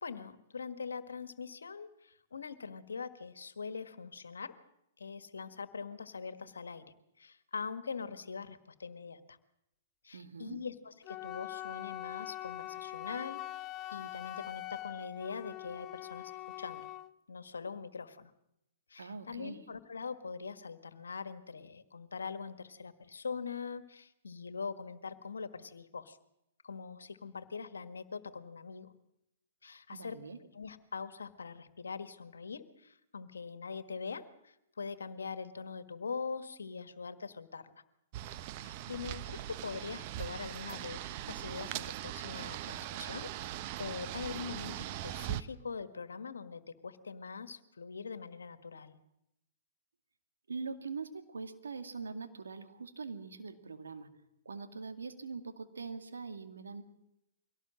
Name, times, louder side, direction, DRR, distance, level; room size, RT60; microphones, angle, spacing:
voice 1, 0.0-4.5 5.0-6.8 7.2-9.4 10.0-13.4 13.9-16.9 17.3-18.3 18.9-26.2 26.6-28.9 29.6-30.2 30.5-37.7 38.6-43.3 43.8-49.0, left 5 dB, 85° left, 11 dB, 1.6 m, -43 dB
voice 2, 10.1-10.6 19.0-19.6 29.9-30.4 50.5-54.1 54.4-56.8, right 4 dB, 85° right, 7 dB, 2.2 m, -43 dB
Wind instrument woodwind instrument, 11.0-17.1, left 16 dB, 30° left, 0.8 m, -43 dB
sound 1, 38.1-45.4, right 13 dB, 45° right, 0.9 m, -40 dB
23.5 x 17.5 x 7.6 m, 0.83 s
hypercardioid pair, 120°, 0 cm